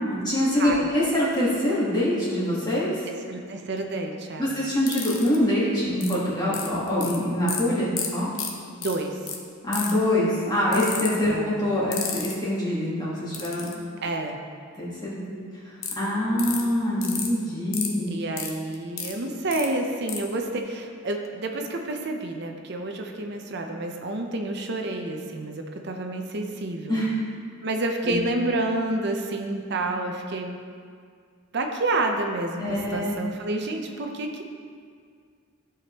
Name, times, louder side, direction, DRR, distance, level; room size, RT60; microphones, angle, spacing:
voice 1, 0.0-3.1 4.4-8.3 9.6-13.7 14.7-15.4 15.6-18.2 26.9-27.1 28.0-28.2 32.6-33.2, left 1 dB, 20° left, -8 dB, 1.4 m, -25 dB
voice 2, 0.6-0.9 3.3-4.5 8.8-9.2 11.2-11.6 14.0-14.4 18.1-27.0 27.6-30.6 31.5-34.4, right 2 dB, 50° right, 3 dB, 0.7 m, -29 dB
sound 1, 4.9-5.4 6.0-6.1 6.5-7.2 7.5-7.6 8.0-8.1 8.4-8.5 8.8-8.9 9.3-9.4 9.7-10.0 10.7-11.1 11.9-12.3 13.3-13.7 15.8-15.9 16.4-16.6 17.0-17.3 17.7-17.9 18.4-19.1 19.5-19.7 20.1-20.2, left 7 dB, 65° left, 0.9 m, -30 dB
14.0 x 5.0 x 3.0 m, 2.1 s
head